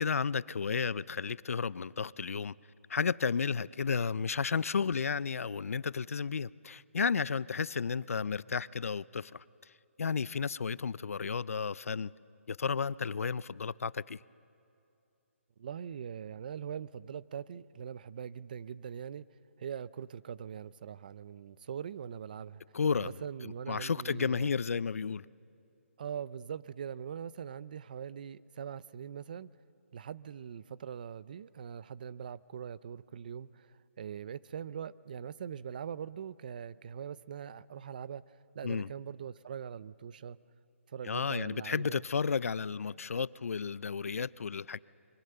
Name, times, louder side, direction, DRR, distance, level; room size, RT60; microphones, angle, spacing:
voice 1, 0.0-2.5 2.9-9.4 10.0-12.1 12.5-14.2 22.7-23.1 23.4-25.3 38.6-38.9 41.0-44.8, left 5 dB, 80° left, 0.5 m, -32 dB
voice 2, 15.6-19.3 19.6-22.6 22.9-24.5 26.0-29.5 29.9-38.2 38.5-40.4 40.9-42.0, right 8 dB, 40° right, 0.5 m, -42 dB
25.5 x 23.5 x 6.8 m
hypercardioid pair, 170°, 8 cm